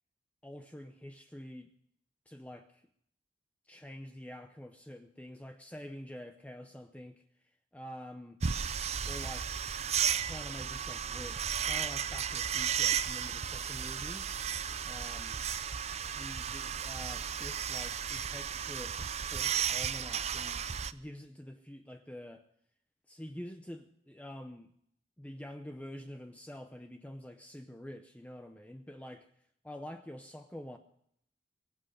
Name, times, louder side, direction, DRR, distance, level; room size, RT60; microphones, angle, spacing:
voice 1, 0.4-1.7 2.3-2.8 3.7-7.2 7.7-8.4 9.1-9.6 10.2-14.3 14.8-15.4 16.2-20.6 20.9-22.4 23.1-24.7 25.2-29.3 29.6-30.8, equal, 5° left, 6 dB, 0.7 m, -47 dB
sound 1, 8.4-20.9, right 8 dB, 35° right, 0.5 m, -34 dB
23.0 x 8.0 x 6.5 m, 0.71 s
head